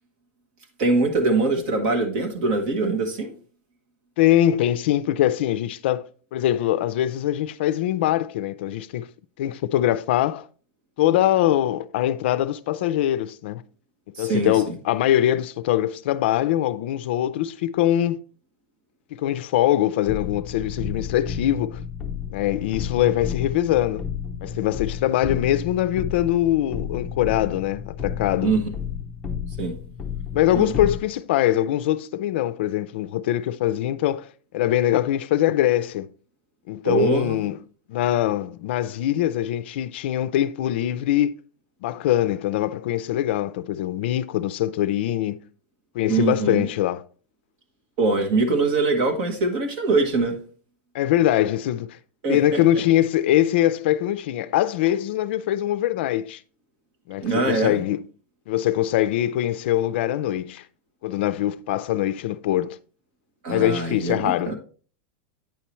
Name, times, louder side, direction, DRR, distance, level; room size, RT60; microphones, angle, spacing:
voice 1, 0.8-3.3 14.2-14.7 28.4-28.7 29.6-29.8 30.5-30.7 36.8-37.5 46.1-46.6 48.0-50.4 52.2-52.6 57.2-57.7 63.4-64.6, right 3 dB, 45° right, 1.3 m, -23 dB
voice 2, 4.2-9.1 9.4-10.5 11.0-13.6 14.2-18.2 19.2-21.8 22.3-24.1 24.4-28.5 30.3-34.3 34.5-36.1 36.7-37.6 37.9-41.3 41.8-45.4 45.9-47.0 50.9-52.0 52.3-56.4 57.1-58.0 58.5-60.6 61.0-62.8 63.5-64.5, left 12 dB, 60° left, 0.4 m, -22 dB
sound 1, 20.1-31.0, left 7 dB, 10° left, 0.7 m, -32 dB
9.0 x 5.6 x 3.0 m
supercardioid pair, 180°, 7 cm